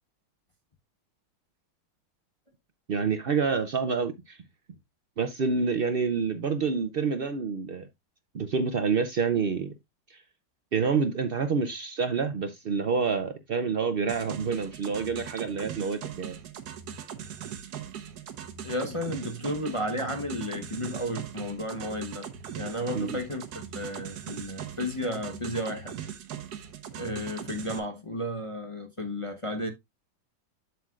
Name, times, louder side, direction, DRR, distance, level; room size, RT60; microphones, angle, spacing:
voice 1, 2.9-4.4 5.2-7.9 8.3-9.7 10.1-10.2 10.7-16.3 22.9-23.2, right 5 dB, 85° right, 0.5 m, -28 dB
sound 1, 14.1-27.8, right 9 dB, 65° right, 1.4 m, -40 dB
voice 2, 18.6-22.3 22.6-23.4 23.7-25.9 26.9-29.7, left 1 dB, 25° left, 0.8 m, -33 dB
7.7 x 7.0 x 2.4 m
omnidirectional pair, 1.9 m